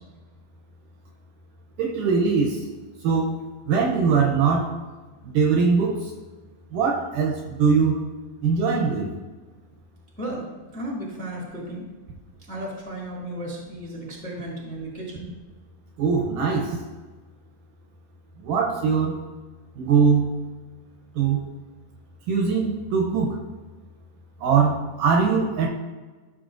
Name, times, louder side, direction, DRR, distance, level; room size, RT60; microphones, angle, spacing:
voice 1, 1.8-2.7 3.0-3.3 3.7-4.8 5.2-6.1 6.7-8.0 8.4-9.1 16.0-16.8 18.4-19.2 19.8-20.3 21.2-21.5 22.3-23.4 24.4-25.7, right 5 dB, 75° right, 0 dB, 2.1 m, -21 dB
voice 2, 10.2-10.5 10.7-11.9 12.5-15.3, right 1 dB, 5° left, -4 dB, 1.0 m, -34 dB
12.5 x 6.7 x 2.5 m, 1.3 s
omnidirectional pair, 4.3 m